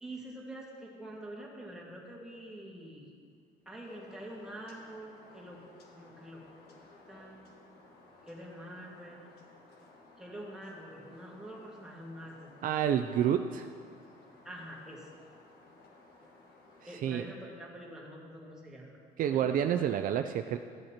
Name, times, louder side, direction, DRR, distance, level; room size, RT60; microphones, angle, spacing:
voice 1, 0.0-3.1 3.7-5.6 5.9-6.8 7.1-7.5 8.3-9.4 10.2-12.5 14.4-15.1 16.9-19.0 19.3-19.9, right 1 dB, 5° right, -4 dB, 1.7 m, -46 dB
sound 1, 3.8-17.0, left 2 dB, 70° left, 1.4 m, -58 dB
voice 2, 12.6-13.7 17.0-17.2 19.2-20.6, right 9 dB, 55° right, 7 dB, 0.4 m, -29 dB
13.5 x 7.8 x 2.9 m, 2.2 s
cardioid pair, 110°, 17 cm